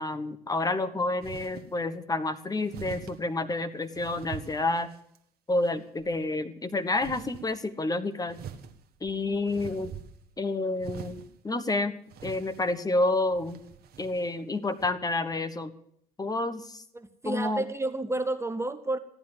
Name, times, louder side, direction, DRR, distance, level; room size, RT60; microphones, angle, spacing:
voice 1, 0.0-4.9 5.5-8.4 9.0-9.9 10.4-11.2 11.4-11.9 12.2-13.6 14.0-15.7 16.2-16.8 17.2-17.6, left 2 dB, 20° left, 10 dB, 1.2 m, -29 dB
sound 1, 1.2-1.7 2.7-3.2 3.9-5.2 5.6-6.2 7.0-7.5 8.3-10.4 10.8-11.3 12.1-12.8 13.3-14.3 14.8-14.9, right 8 dB, 55° right, 1.4 m, -44 dB
voice 2, 16.9-19.0, right 2 dB, 15° right, 10 dB, 0.9 m, -31 dB
15.0 x 10.5 x 7.5 m, 0.68 s
hypercardioid pair, 60°, 20 cm